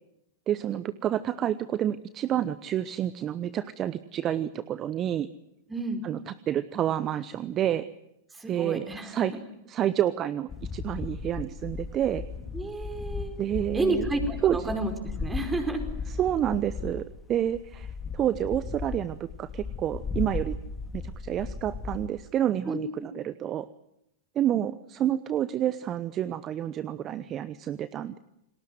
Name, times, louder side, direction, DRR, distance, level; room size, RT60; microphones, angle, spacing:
voice 1, 0.5-5.3 6.0-7.9 8.5-9.3 9.7-12.2 13.4-14.1 14.4-14.6 16.1-17.0 17.3-20.6 20.9-23.7 24.3-28.2, right 11 dB, 35° right, 16 dB, 0.9 m, -29 dB
voice 2, 5.7-6.0 8.3-9.4 12.5-13.4 13.7-14.9 15.2-15.8 22.7-22.8, right 2 dB, 15° right, 6 dB, 5.0 m, -30 dB
sound 1, 10.5-22.1, left 4 dB, 20° left, 3.2 m, -36 dB
29.0 x 20.0 x 7.8 m, 0.82 s
hypercardioid pair, 100°, 0 cm